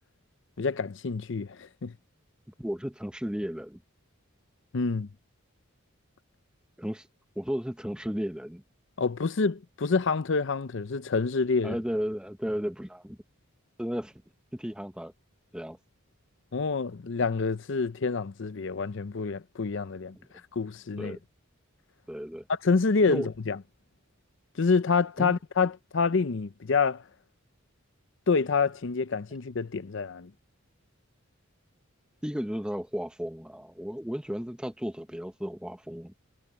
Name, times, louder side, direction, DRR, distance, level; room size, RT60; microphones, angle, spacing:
voice 1, 0.6-1.9 4.7-5.1 9.0-11.8 16.5-20.2 20.5-21.2 22.5-23.6 24.6-27.0 28.3-30.3, left 4 dB, 60° left, 0.6 m, -27 dB
voice 2, 2.5-3.8 6.8-7.1 7.4-8.6 11.6-13.2 13.8-14.1 14.5-15.1 15.5-15.8 20.1-20.3 21.0-21.2 22.1-22.5 23.1-23.3 25.2-25.3 32.2-36.1, equal, 5° right, 1.0 m, -34 dB
head